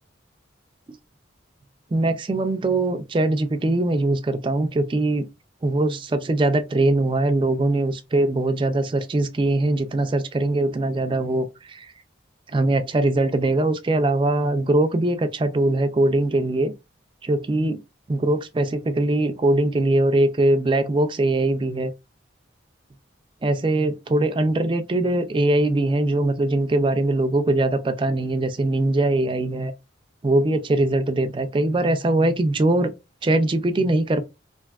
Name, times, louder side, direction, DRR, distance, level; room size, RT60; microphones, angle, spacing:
voice 1, 1.9-5.3 5.6-11.9 12.5-16.7 17.2-17.8 18.1-21.9 23.4-29.7 30.2-32.9 33.2-34.2, right 2 dB, 25° right, 0.3 m, -21 dB
3.3 x 2.6 x 2.3 m
head